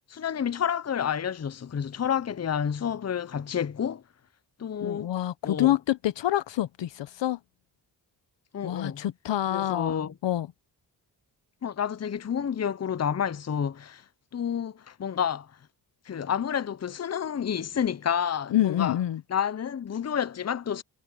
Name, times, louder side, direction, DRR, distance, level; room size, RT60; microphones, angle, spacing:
voice 1, 0.1-4.0 4.6-5.1 5.4-5.7 8.5-9.0 9.5-10.1 11.6-14.0 14.3-15.5 16.1-18.9 19.3-20.8, left 8 dB, 35° left, 0.8 m, -29 dB
voice 2, 4.8-7.4 8.6-10.5 18.5-19.2, left 13 dB, 80° left, 0.9 m, -27 dB
cardioid pair, 60°, 43 cm